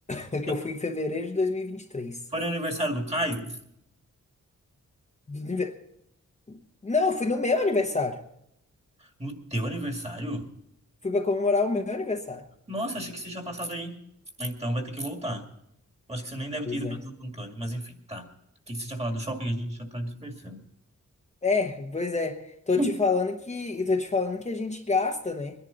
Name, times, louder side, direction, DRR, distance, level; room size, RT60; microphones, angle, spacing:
voice 1, 0.1-2.2 5.3-5.7 6.5-8.2 11.0-12.4 16.7-17.0 21.4-25.5, left 3 dB, 25° left, 1 dB, 1.1 m, -27 dB
voice 2, 2.3-3.6 9.2-10.5 12.7-14.0 14.4-15.5 16.1-18.3 18.7-20.6 22.8-22.9, right 1 dB, 20° right, 3 dB, 2.2 m, -32 dB
23.0 x 11.0 x 4.0 m, 0.76 s
wide cardioid pair, 145°, 30 cm